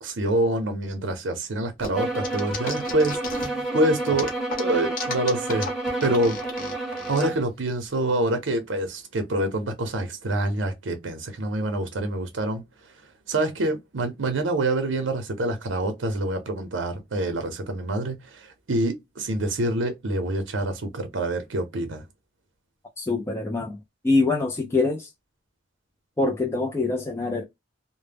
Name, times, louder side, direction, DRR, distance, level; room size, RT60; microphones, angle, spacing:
voice 1, 0.0-4.3 4.6-5.7 6.0-6.4 7.1-12.6 13.3-22.0, right 1 dB, 70° right, 0.6 m, -26 dB
sound 1, 1.8-3.7 4.1-7.2, left 4 dB, 45° left, 0.7 m, -34 dB
sound 2, 1.9-7.5, right 2 dB, ahead, 0.8 m, -29 dB
voice 2, 23.0-23.8 24.0-25.1 26.2-27.4, left 3 dB, 15° left, 0.3 m, -24 dB
2.1 x 2.1 x 3.3 m
head